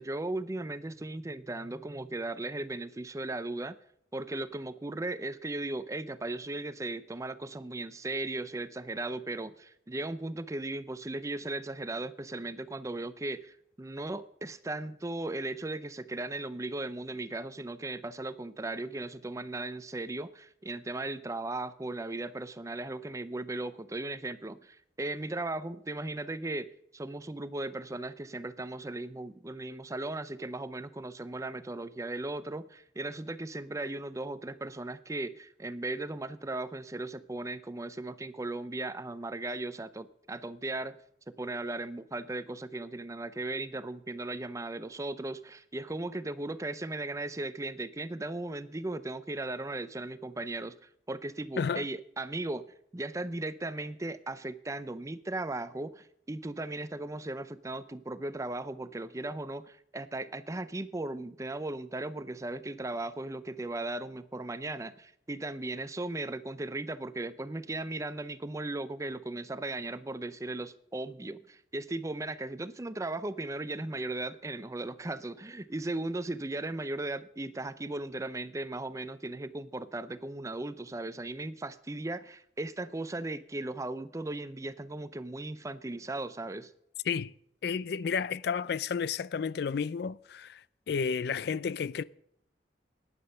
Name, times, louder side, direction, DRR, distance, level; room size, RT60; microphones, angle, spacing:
voice 1, 0.0-3.8 4.1-41.0 41.3-52.7 52.9-86.7, right 2 dB, 15° right, 0.5 m, -37 dB
voice 2, 87.6-90.6 90.9-92.0, left 6 dB, 60° left, 0.4 m, -31 dB
12.0 x 9.8 x 5.5 m
head